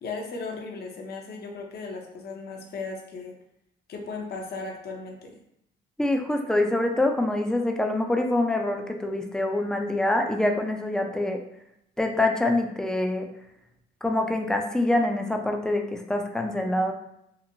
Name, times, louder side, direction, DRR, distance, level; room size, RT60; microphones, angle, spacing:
voice 1, 0.0-3.3 3.9-5.4, left 3 dB, 55° left, 1 dB, 0.6 m, -36 dB
voice 2, 6.0-11.4 12.0-13.3 14.0-16.9, left 1 dB, 5° left, 3 dB, 0.4 m, -25 dB
2.9 x 2.5 x 2.7 m, 0.80 s
cardioid pair, 90°, 20 cm